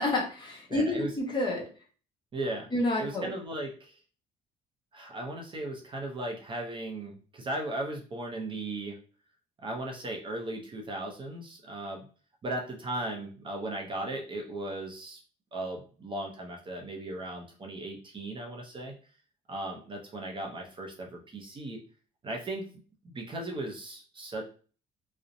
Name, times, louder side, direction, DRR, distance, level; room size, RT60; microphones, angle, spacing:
voice 1, 0.0-1.6 2.7-3.3, left 1 dB, 25° left, -2 dB, 0.9 m, -29 dB
voice 2, 0.7-1.1 2.3-2.7 3.0-4.0 4.9-9.0 9.6-12.0 12.4-15.2 15.5-18.9 19.5-21.8 22.2-22.7 23.0-24.5, right 1 dB, 30° right, 0 dB, 0.5 m, -37 dB
2.6 x 2.0 x 2.5 m, 0.39 s
cardioid pair, 110°, 17 cm